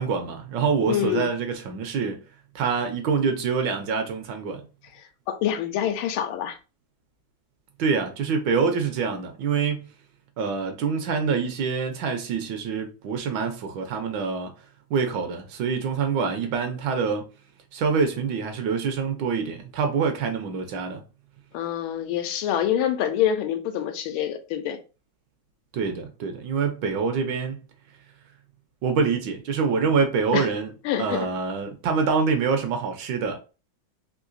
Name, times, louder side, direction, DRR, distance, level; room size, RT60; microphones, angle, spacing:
voice 1, 0.0-2.2 2.5-4.7 7.8-9.9 10.4-14.5 14.9-17.3 17.7-21.0 25.7-27.6 28.8-30.7 31.0-33.4, right 5 dB, 75° right, 1.2 m, -25 dB
voice 2, 0.9-1.3 5.3-6.6 21.5-24.8 30.3-30.5 30.8-31.3, left 10 dB, 90° left, 1.4 m, -26 dB
3.7 x 2.7 x 2.4 m
omnidirectional pair, 2.2 m